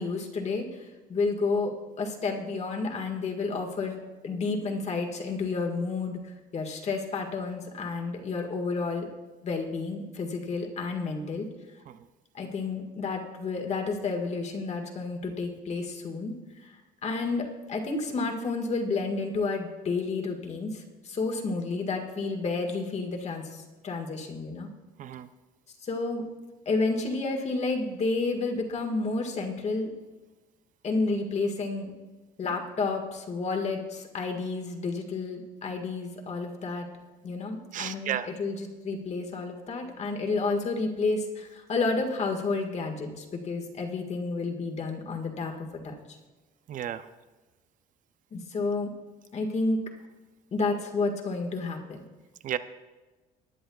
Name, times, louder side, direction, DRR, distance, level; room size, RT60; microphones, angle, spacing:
voice 1, 0.0-9.1 9.4-11.5 12.3-16.3 16.6-16.7 17.0-24.7 25.8-26.2 26.6-29.9 30.8-31.9 32.4-36.9 37.2-45.5 45.8-46.2 48.3-48.9 49.3-49.8 50.5-52.0, left 3 dB, 40° left, 2 dB, 1.7 m, -31 dB
voice 2, 37.7-38.3 46.7-47.1 52.4-52.6, right 11 dB, 50° right, 12 dB, 0.6 m, -33 dB
20.0 x 10.0 x 2.3 m, 1.2 s
cardioid pair, 110°, 17 cm